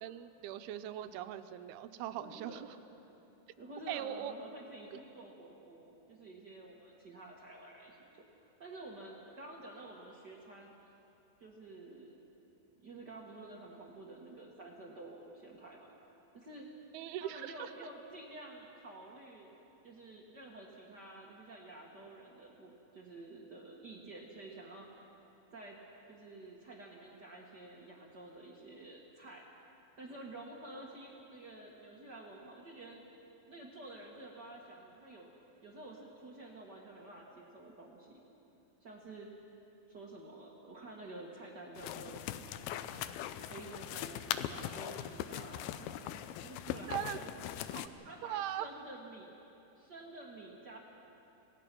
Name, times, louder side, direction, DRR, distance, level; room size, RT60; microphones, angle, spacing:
voice 1, 0.0-2.7 3.9-4.3 16.9-17.7 46.9-47.2 47.7-48.7, right 12 dB, 85° right, 10 dB, 2.6 m, -40 dB
voice 2, 2.2-2.7 3.0-3.1 3.6-8.0 8.4-10.9 11.4-12.2 12.8-15.9 16.3-16.7 17.2-19.5 19.8-25.1 25.5-25.8 26.1-29.4 30.0-33.0 33.5-35.3 35.6-38.2 38.8-39.3 39.9-42.2 43.5-45.8 46.4-47.5 48.0-49.3 49.7-50.8, right 2 dB, 55° right, -2 dB, 1.1 m, -50 dB
sound 1, 41.8-47.9, left 11 dB, 80° left, 2.5 m, -40 dB
26.5 x 18.0 x 6.1 m, 2.9 s
omnidirectional pair, 4.5 m